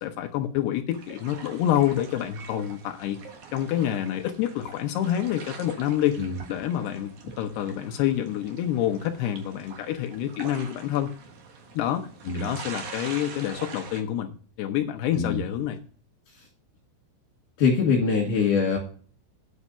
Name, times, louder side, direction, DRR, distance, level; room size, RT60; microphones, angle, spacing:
voice 1, 0.0-3.2 3.5-6.2 6.5-11.1 11.7-12.1 12.3-14.3 14.6-15.8, left 11 dB, 85° left, 4 dB, 2.3 m, -27 dB
sound 1, 0.9-14.0, right 5 dB, 65° right, 2.0 m, -44 dB
voice 2, 17.6-18.8, left 5 dB, 50° left, -2 dB, 3.2 m, -23 dB
9.6 x 6.1 x 5.5 m, 0.41 s
omnidirectional pair, 5.7 m